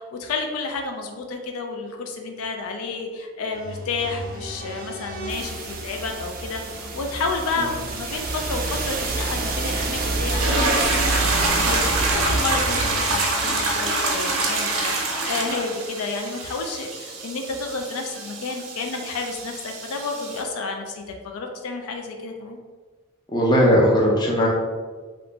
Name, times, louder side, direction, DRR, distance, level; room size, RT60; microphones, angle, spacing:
voice 1, 0.0-22.6, left 3 dB, 85° left, 4 dB, 0.4 m, -31 dB
sound 1, 3.5-15.4, right 2 dB, 40° right, 0.4 m, -29 dB
sound 2, 10.2-20.4, right 2 dB, 85° right, 0.6 m, -26 dB
voice 2, 23.3-24.5, equal, 20° left, -3 dB, 0.5 m, -17 dB
2.9 x 2.5 x 3.3 m, 1.4 s
head